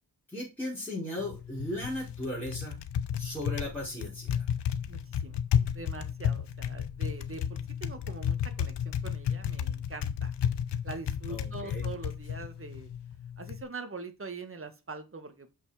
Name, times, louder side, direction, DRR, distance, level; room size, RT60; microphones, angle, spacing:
voice 1, 0.3-2.8 3.1-4.5 11.3-11.9, left 1 dB, 5° left, -8 dB, 4.8 m, -37 dB
Typing, 1.2-13.6, left 8 dB, 85° left, 0.8 m, -33 dB
voice 2, 4.9-5.4 5.7-10.4 10.8-12.9 13.4-15.5, right 3 dB, 35° right, 7 dB, 1.7 m, -43 dB
6.8 x 5.8 x 5.0 m, 0.27 s
cardioid pair, 75°, 40 cm